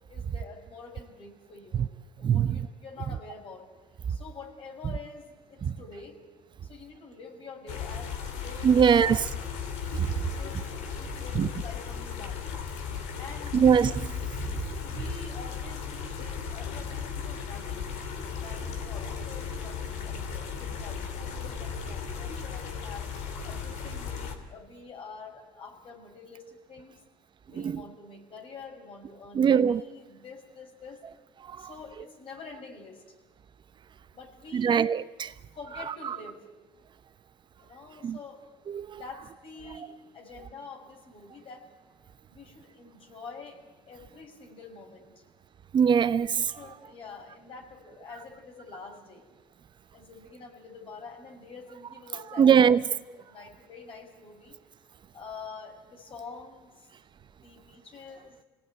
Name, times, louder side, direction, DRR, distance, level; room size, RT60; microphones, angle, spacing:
voice 1, 0.1-1.9 2.2-3.6 4.1-6.2 6.6-9.5 10.2-10.6 11.0-12.5 13.2-13.7 14.8-17.9 18.4-23.1 23.4-27.0 27.5-31.0 31.6-33.0 34.1-34.9 35.5-36.4 37.6-38.4 38.9-41.7 42.3-43.6 43.9-45.1 46.3-49.3 49.9-54.5 55.1-56.7 57.4-58.4, left 4 dB, 50° left, 6.2 m, -46 dB
sound 1, 7.7-24.4, left 6 dB, 75° left, 3.1 m, -36 dB
voice 2, 8.6-9.2 10.0-10.1 11.4-11.5 13.5-14.1 27.6-27.8 29.3-29.8 31.5-31.7 34.5-35.3 38.0-38.2 38.7-39.0 45.7-46.5 52.4-52.8, right 7 dB, 40° right, 0.7 m, -22 dB
26.5 x 18.5 x 9.2 m
supercardioid pair, 75°, 12 cm